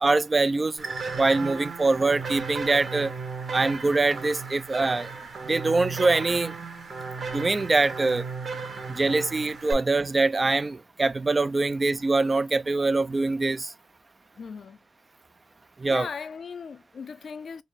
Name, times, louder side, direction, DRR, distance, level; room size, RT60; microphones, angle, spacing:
voice 1, 0.0-0.9 1.2-3.1 3.5-5.1 5.4-6.5 7.3-8.2 8.9-13.7 15.8-16.1, right 3 dB, 30° right, 0.3 m, -24 dB
sound 1, 0.8-9.7, right 4 dB, 55° right, 1.4 m, -35 dB
voice 2, 14.4-14.8 15.9-17.6, left 5 dB, 60° left, 0.5 m, -38 dB
4.1 x 2.0 x 3.6 m
cardioid pair, 60°, 0 cm